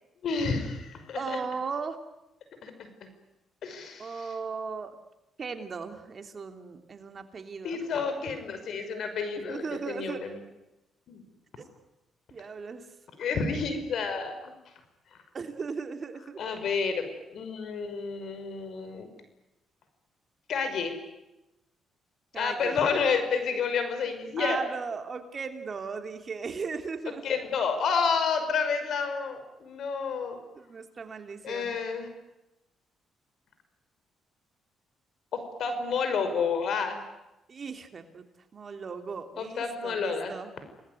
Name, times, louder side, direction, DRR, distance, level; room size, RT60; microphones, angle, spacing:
voice 1, 0.2-1.4 2.6-2.9 3.6-4.3 7.6-10.4 11.1-11.2 13.2-14.5 16.4-19.1 20.5-20.9 22.4-24.6 27.2-30.4 31.4-32.1 35.3-37.0 39.4-40.3, left 5 dB, 65° left, 8 dB, 5.7 m, -30 dB
voice 2, 1.2-2.0 4.0-5.0 5.4-7.8 9.5-10.3 11.6-11.7 12.3-12.8 15.3-16.6 22.3-22.8 24.4-27.2 30.5-31.7 37.5-38.2 38.5-40.5, right 5 dB, 40° right, 6 dB, 3.1 m, -37 dB
28.5 x 19.5 x 9.7 m, 0.94 s
cardioid pair, 90°, 0 cm